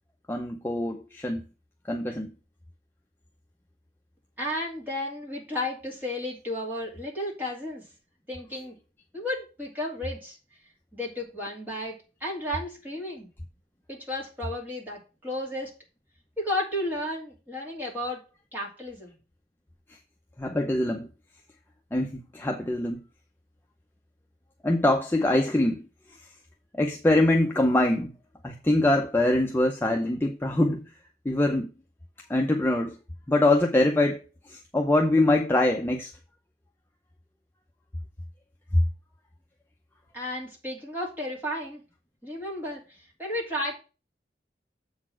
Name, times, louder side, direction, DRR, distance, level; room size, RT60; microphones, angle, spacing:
voice 1, 0.3-1.4 1.9-2.3 20.4-21.1 21.9-23.0 24.6-25.8 26.7-28.1 28.4-30.8 31.2-31.7 32.3-33.0 33.3-34.2 34.5-36.1, left 1 dB, 15° left, 0.6 m, -23 dB
voice 2, 4.4-7.8 8.3-8.8 9.1-10.4 10.9-11.9 12.2-13.3 13.9-15.7 16.4-18.2 18.5-19.1 40.1-41.8 42.2-43.8, left 1 dB, 10° right, 2.6 m, -33 dB
7.6 x 4.0 x 6.0 m
head